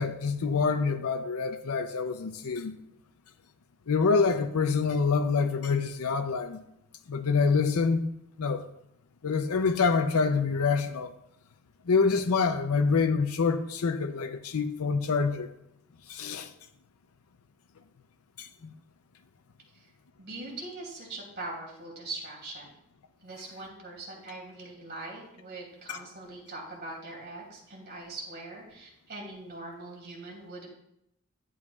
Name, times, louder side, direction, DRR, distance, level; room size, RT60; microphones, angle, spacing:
voice 1, 0.0-2.7 3.9-6.6 7.1-8.0 8.4-8.6 9.2-11.1 11.9-15.5 16.1-16.5 18.4-18.7 25.9-26.0, left 5 dB, 80° left, 0.6 m, -26 dB
voice 2, 20.2-22.7 23.2-30.7, right 2 dB, 45° right, 2.8 m, -42 dB
11.0 x 9.2 x 2.4 m
head